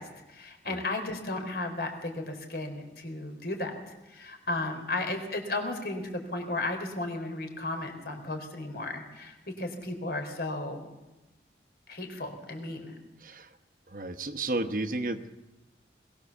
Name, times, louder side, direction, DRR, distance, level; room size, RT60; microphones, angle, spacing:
voice 1, 0.0-10.9 11.9-12.9, left 2 dB, 60° left, 4 dB, 4.0 m, -34 dB
voice 2, 13.2-13.6 13.9-15.3, right 2 dB, 50° right, 10 dB, 1.1 m, -33 dB
21.5 x 18.5 x 7.2 m, 1.0 s
head